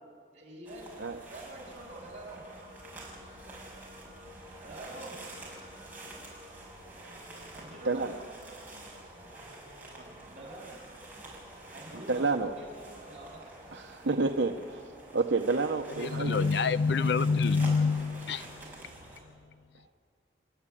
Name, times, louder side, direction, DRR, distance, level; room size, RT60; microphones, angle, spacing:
voice 1, 0.3-2.4 4.6-5.1 7.5-8.1 9.9-10.7 11.7-13.5 13.9-14.0, right 2 dB, 35° right, 7.8 m, -46 dB
sound 1, 0.6-19.2, right 2 dB, 10° right, 5.6 m, -48 dB
sound 2, 1.0-17.2, left 1 dB, 30° left, 7.5 m, -55 dB
voice 2, 7.8-8.2 12.1-12.5 13.7-14.8 15.1-16.5, right 3 dB, 70° right, 0.9 m, -29 dB
voice 3, 16.0-18.5, left 4 dB, 60° left, 0.6 m, -26 dB
30.0 x 12.0 x 9.9 m
head